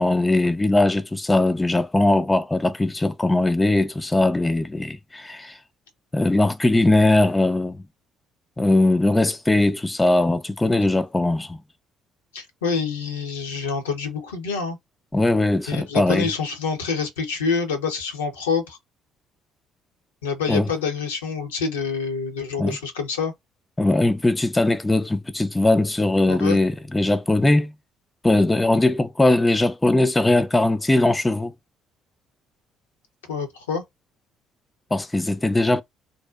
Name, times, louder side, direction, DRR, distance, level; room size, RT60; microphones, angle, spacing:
voice 1, 0.0-5.6 6.1-7.8 8.6-11.6 15.1-16.3 20.5-20.7 22.6-22.8 23.8-27.7 28.2-31.5 34.9-35.8, left 2 dB, 15° left, 0.3 m, -20 dB
voice 2, 12.3-14.8 15.7-18.8 20.2-23.3 26.3-26.6 33.3-33.8, left 5 dB, 75° left, 0.6 m, -27 dB
2.6 x 2.0 x 2.3 m
figure-of-eight pair, 50°, 0 cm